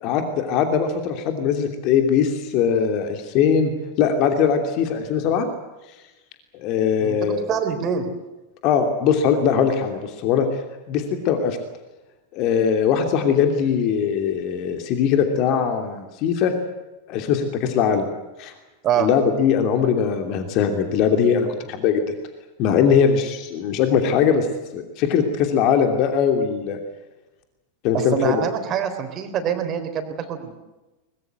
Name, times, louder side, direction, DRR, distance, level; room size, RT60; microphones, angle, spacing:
voice 1, 0.0-3.7 4.0-5.5 6.5-7.4 8.6-10.5 10.9-11.6 12.3-16.5 17.1-18.1 18.4-18.5 19.0-22.1 22.6-24.5 24.7-26.8 27.8-28.4, left 7 dB, 40° left, 5 dB, 2.9 m, -20 dB
voice 2, 7.0-8.1 18.8-19.1 27.9-30.5, right 8 dB, 30° right, 7 dB, 3.8 m, -25 dB
23.5 x 21.5 x 8.0 m, 1.1 s
figure-of-eight pair, 90°, 0 cm